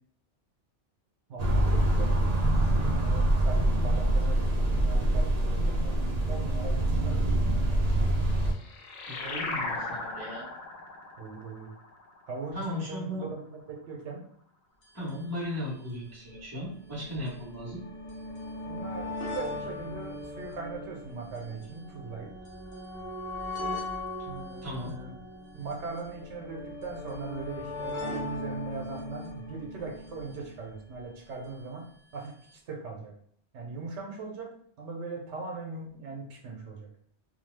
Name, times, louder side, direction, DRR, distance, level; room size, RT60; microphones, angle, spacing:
voice 1, 1.3-8.2 11.2-11.7 12.3-14.2 18.7-22.3 24.2-25.2 25.5-33.1 33.5-36.9, right 3 dB, 80° right, 1 dB, 1.0 m, -40 dB
sound 1, 1.4-8.5, right 1 dB, 55° right, 0.4 m, -25 dB
sound 2, 8.1-13.1, left 3 dB, 85° left, 0.9 m, -38 dB
voice 2, 9.1-10.5 12.5-13.3 14.9-17.8 24.6-25.0, equal, 15° right, -7 dB, 1.1 m, -36 dB
sound 3, 14.8-14.9 15.1-15.2 16.0-31.3 32.3-32.4 32.5-32.6, left 2 dB, 55° left, 1.1 m, -39 dB
2.6 x 2.2 x 3.1 m, 0.63 s
omnidirectional pair, 1.2 m